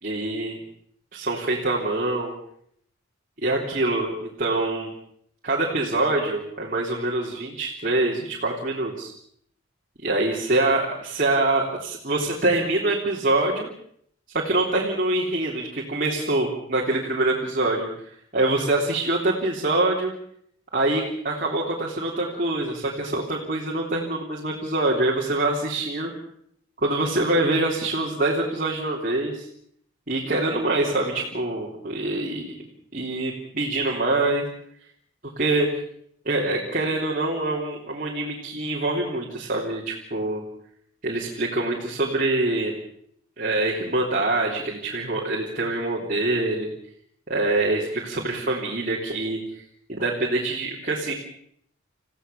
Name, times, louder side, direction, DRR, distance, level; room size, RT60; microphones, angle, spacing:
voice 1, 0.0-0.6 1.1-2.3 3.4-4.9 5.4-9.1 10.0-13.7 14.3-20.1 20.7-26.1 26.8-29.5 30.1-34.4 35.4-35.7 36.3-40.4 41.0-42.8 43.4-46.7 47.3-49.6 49.9-51.1, right 2 dB, 40° right, -3 dB, 3.5 m, -25 dB
29.0 x 16.5 x 7.0 m, 0.67 s
head